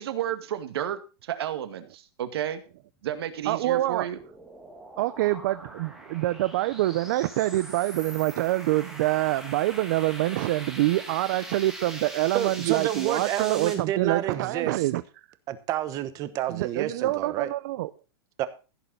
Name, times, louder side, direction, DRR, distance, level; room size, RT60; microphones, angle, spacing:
voice 1, 0.0-2.6 3.0-4.2, right 10 dB, 70° right, 10 dB, 2.1 m, -32 dB
sound 1, 3.4-13.8, right 1 dB, ahead, 2.7 m, -42 dB
voice 2, 3.5-4.1 5.0-15.0 16.5-17.9, right 16 dB, 50° right, 14 dB, 0.6 m, -26 dB
voice 3, 12.3-14.9 15.5-17.5 18.4-18.5, right 12 dB, 25° right, 13 dB, 1.1 m, -29 dB
15.5 x 6.8 x 5.4 m, 0.33 s
supercardioid pair, 165°, 13 cm